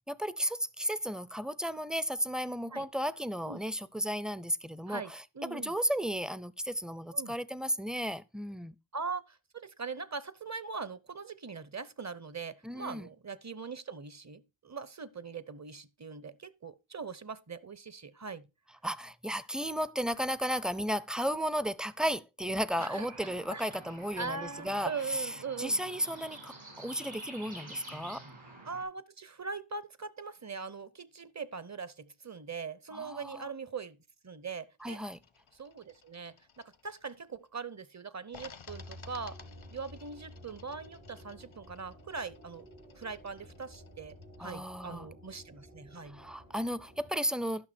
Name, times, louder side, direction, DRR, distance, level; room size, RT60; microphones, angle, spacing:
voice 1, 0.1-5.2 5.5-8.7 12.6-13.1 18.8-25.3 25.6-28.2 32.9-33.5 34.8-35.2 44.4-45.1 46.1-47.7, equal, ahead, 0.4 m, -34 dB
voice 2, 4.9-5.8 7.1-7.4 8.9-18.5 22.8-23.8 24.2-25.8 28.6-35.0 35.5-39.4 39.7-42.7 42.9-46.2, right 5 dB, 35° right, 0.7 m, -41 dB
sound 1, 22.8-28.8, right 2 dB, 75° right, 5.1 m, -49 dB
sound 2, 34.8-37.5 38.3-44.5, left 6 dB, 80° left, 0.8 m, -56 dB
sound 3, 38.7-47.1, left 1 dB, 90° right, 5.1 m, -52 dB
12.0 x 5.9 x 4.3 m
wide cardioid pair, 45°, 47 cm